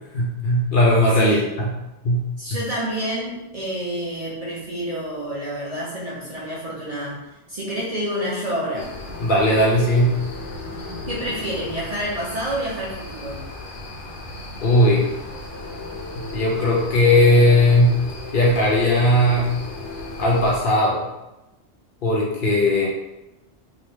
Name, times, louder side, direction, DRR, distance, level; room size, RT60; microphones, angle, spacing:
voice 1, 0.1-1.7 2.0-2.2 9.2-10.2 14.6-15.0 16.1-18.0 18.3-19.5 20.2-21.1 22.0-22.9, left 1 dB, 55° left, -3 dB, 0.7 m, -18 dB
voice 2, 2.4-7.2 7.5-8.9 11.1-13.4, right 1 dB, 40° right, -7 dB, 0.6 m, -28 dB
sound 1, 8.8-20.6, left 2 dB, 90° left, 0.9 m, -35 dB
2.8 x 2.3 x 3.3 m, 0.96 s
omnidirectional pair, 1.2 m